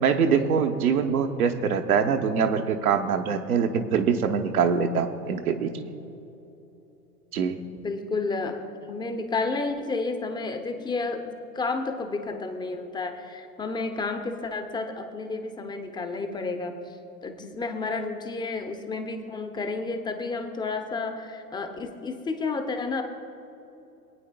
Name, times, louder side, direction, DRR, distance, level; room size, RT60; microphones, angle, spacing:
voice 1, 0.0-5.7 7.3-7.6, right 6 dB, 65° right, 5 dB, 1.0 m, -24 dB
voice 2, 7.7-8.6 8.9-17.0 17.2-23.0, left 3 dB, 10° left, 6 dB, 0.7 m, -31 dB
26.0 x 9.1 x 2.2 m, 2.9 s
figure-of-eight pair, 95°, 48 cm